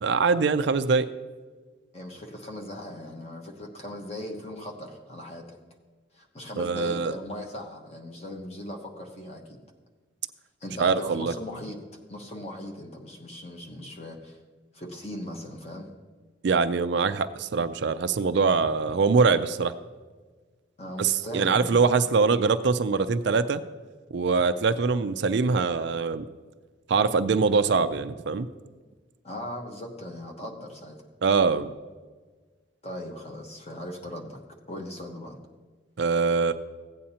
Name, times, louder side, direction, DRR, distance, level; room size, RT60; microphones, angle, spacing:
voice 1, 0.0-1.1 6.6-7.1 10.8-11.3 16.4-19.7 21.0-23.6 24.1-26.3 26.9-28.5 31.2-31.7 36.0-36.5, right 4 dB, 60° right, 11 dB, 0.4 m, -23 dB
voice 2, 1.9-5.6 6.1-9.6 10.6-11.8 12.1-14.4 14.7-15.9 20.8-21.8 29.2-31.0 32.8-34.4 34.7-35.4, left 1 dB, 30° left, 1 dB, 1.1 m, -38 dB
16.0 x 8.7 x 2.8 m, 1.4 s
head